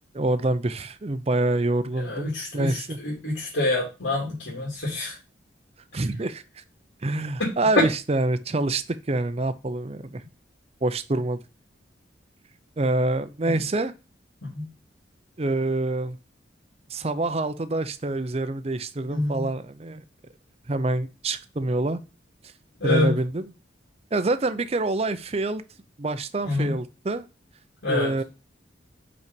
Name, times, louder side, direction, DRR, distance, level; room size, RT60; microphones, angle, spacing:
voice 1, 0.1-3.0 5.9-6.4 7.0-10.2 10.8-11.4 12.8-13.9 15.4-16.2 16.9-20.0 20.7-22.0 22.8-23.4 24.1-25.6 26.0-27.3 27.9-28.2, right 2 dB, 35° right, 12 dB, 0.6 m, -26 dB
voice 2, 2.0-5.2 7.4-7.5 13.4-13.6 14.4-14.7 19.1-19.5 22.8-23.2 26.4-26.8 27.8-28.1, left 2 dB, 85° left, -5 dB, 2.9 m, -27 dB
5.4 x 5.4 x 5.2 m, 0.30 s
head